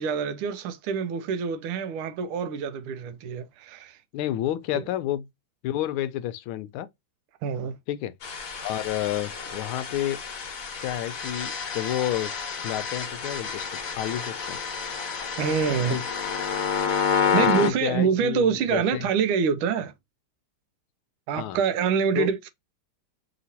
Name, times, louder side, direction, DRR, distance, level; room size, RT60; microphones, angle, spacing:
voice 1, 0.0-4.0 4.7-4.8 7.4-7.8 15.4-16.0 17.3-19.9 21.3-22.5, right 6 dB, 80° right, 1.5 m, -26 dB
voice 2, 4.1-5.3 5.6-6.9 7.9-8.1 8.6-10.2 10.8-12.3 12.6-13.7 13.9-14.6 15.9-16.0 17.2-18.4 18.7-19.1 21.4-21.6 22.1-22.3, left 13 dB, 80° left, 1.4 m, -30 dB
sound 1, 8.2-17.7, left 6 dB, 50° left, 1.2 m, -29 dB
5.5 x 2.9 x 2.8 m
omnidirectional pair, 2.4 m